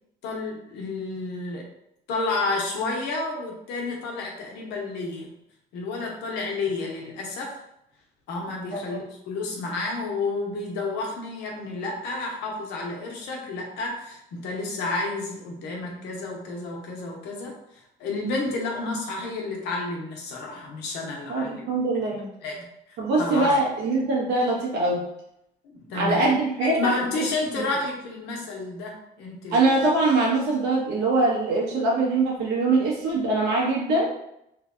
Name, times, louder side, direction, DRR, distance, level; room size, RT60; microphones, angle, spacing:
voice 1, 0.2-1.7 2.1-5.3 5.7-7.6 8.3-21.6 22.4-22.6 23.2-23.6 25.6-26.3 26.6-29.8, left 3 dB, 90° left, 0 dB, 0.9 m, -31 dB
voice 2, 21.3-22.3 23.0-25.0 25.9-27.3 27.5-27.7 29.5-34.1, right 2 dB, 85° right, -3 dB, 1.2 m, -23 dB
3.2 x 2.3 x 3.7 m, 0.79 s
cardioid pair, 110°, 17 cm